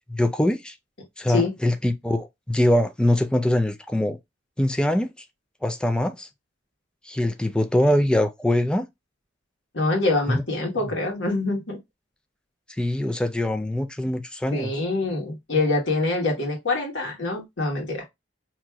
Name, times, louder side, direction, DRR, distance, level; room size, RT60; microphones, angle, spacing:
voice 1, 0.1-0.7 1.2-4.2 4.6-5.1 5.6-6.3 7.1-8.9 10.3-10.4 10.8-10.9 12.8-14.7, left 1 dB, 5° left, 0.4 m, -23 dB
voice 2, 9.7-11.8 14.5-18.0, left 2 dB, 85° left, 1.5 m, -25 dB
4.5 x 2.9 x 2.2 m
head